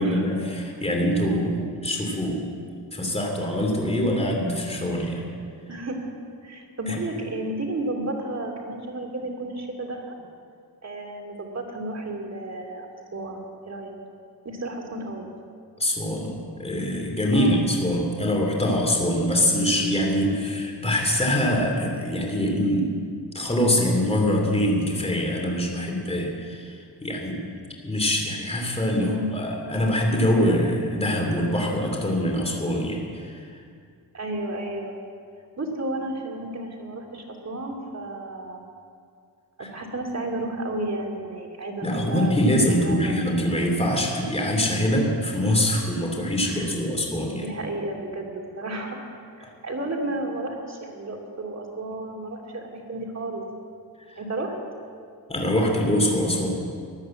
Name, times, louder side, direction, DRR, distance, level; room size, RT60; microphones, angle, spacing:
voice 1, 0.0-5.2 6.9-7.0 15.8-22.9 23.3-27.6 27.8-33.4 39.6-39.7 41.8-47.4 49.4-49.5 55.3-56.5, equal, 15° left, 0 dB, 2.9 m, -24 dB
voice 2, 6.4-10.1 10.8-13.9 14.4-15.3 17.3-17.6 29.0-29.4 34.1-35.0 35.6-38.6 39.6-42.4 42.7-43.2 46.4-46.7 47.4-49.0 49.4-53.5 54.2-54.6, right 2 dB, 40° right, 1 dB, 2.8 m, -32 dB
15.0 x 11.0 x 7.6 m, 2.3 s
cardioid pair, 85°, 41 cm